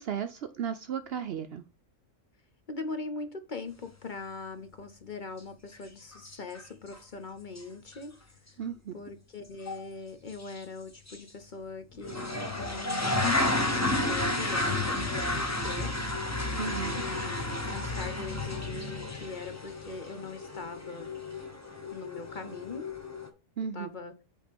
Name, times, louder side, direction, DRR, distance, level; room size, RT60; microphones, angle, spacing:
voice 1, 0.0-1.6 8.6-8.9 16.6-17.0 23.6-23.9, right 8 dB, 60° right, 0.7 m, -35 dB
voice 2, 2.7-8.5 8.9-15.9 16.9-21.1 21.9-22.9 23.7-24.1, left 3 dB, 45° left, 0.8 m, -41 dB
sound 1, 5.7-5.8 6.1-6.6 6.9-7.0 7.6-7.7 7.9-8.0 9.7-9.8 10.4-10.6 11.1-11.2 12.0-23.3, left 2 dB, 15° left, 0.9 m, -32 dB
7.8 x 3.7 x 5.2 m
omnidirectional pair, 1.4 m